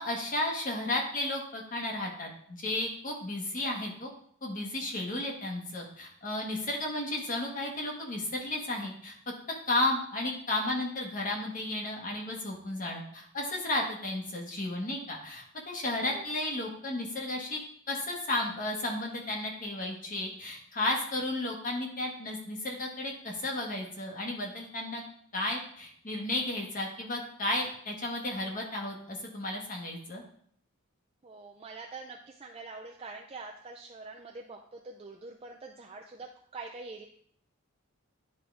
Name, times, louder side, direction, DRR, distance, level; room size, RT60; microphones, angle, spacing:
voice 1, 0.0-4.1 4.4-9.1 9.7-17.6 17.9-25.0 25.3-30.2, left 1 dB, 40° left, -1 dB, 1.5 m, -33 dB
voice 2, 31.2-37.1, right 3 dB, 30° right, 0 dB, 0.5 m, -45 dB
10.5 x 3.8 x 3.5 m, 0.63 s
head